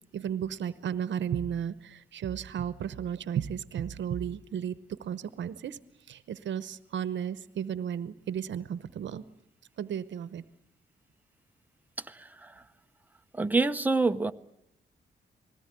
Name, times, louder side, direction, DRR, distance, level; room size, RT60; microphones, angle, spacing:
voice 1, 0.1-5.8 6.1-9.2 9.8-10.4, right 9 dB, 85° right, 15 dB, 0.8 m, -34 dB
voice 2, 12.0-12.6 13.3-14.3, right 3 dB, 10° right, 9 dB, 0.8 m, -27 dB
20.5 x 17.5 x 9.9 m, 0.78 s
cardioid pair, 105°, 18 cm